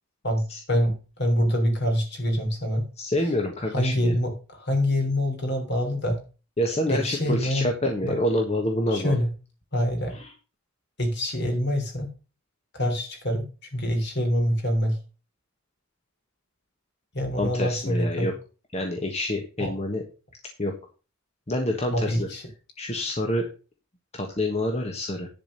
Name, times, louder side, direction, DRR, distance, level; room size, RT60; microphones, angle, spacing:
voice 1, 0.2-2.9 3.7-6.2 6.9-7.7 8.0-8.2 8.9-9.3 9.7-10.2 11.0-12.1 12.7-15.0 17.1-18.3 19.6-19.7 21.9-22.4, equal, 55° left, 4 dB, 3.3 m, -25 dB
voice 2, 3.0-4.2 6.6-9.2 10.1-10.3 17.4-18.3 18.7-20.0 20.6-20.7 21.5-22.3 22.8-23.5 24.1-25.3, left 1 dB, 30° left, 3 dB, 1.3 m, -27 dB
10.5 x 5.1 x 6.5 m, 0.34 s
head